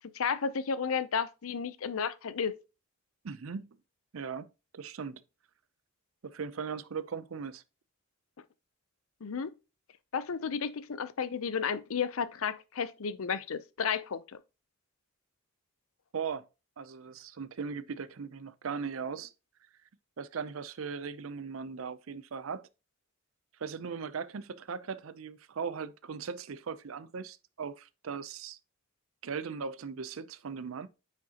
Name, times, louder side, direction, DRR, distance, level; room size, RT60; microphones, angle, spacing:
voice 1, 0.1-2.6 9.2-9.5 10.1-14.4, left 6 dB, 75° left, 0.6 m, -32 dB
voice 2, 3.2-3.7 4.1-5.2 6.2-7.6 16.1-16.4 16.8-19.3 20.2-22.7 23.6-28.6 29.2-30.9, right 6 dB, 70° right, 0.5 m, -38 dB
9.3 x 5.1 x 2.9 m
head